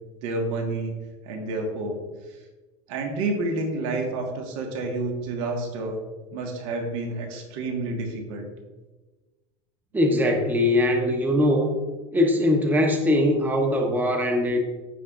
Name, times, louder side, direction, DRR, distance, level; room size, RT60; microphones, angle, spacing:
voice 1, 0.2-0.9 1.3-2.0 2.9-6.0 6.3-8.5, right 2 dB, 75° right, 1 dB, 1.7 m, -29 dB
voice 2, 9.9-11.8 12.1-14.6, left 1 dB, 10° right, 3 dB, 1.0 m, -21 dB
15.0 x 5.6 x 2.5 m, 1.2 s
supercardioid pair, 130°, 17 cm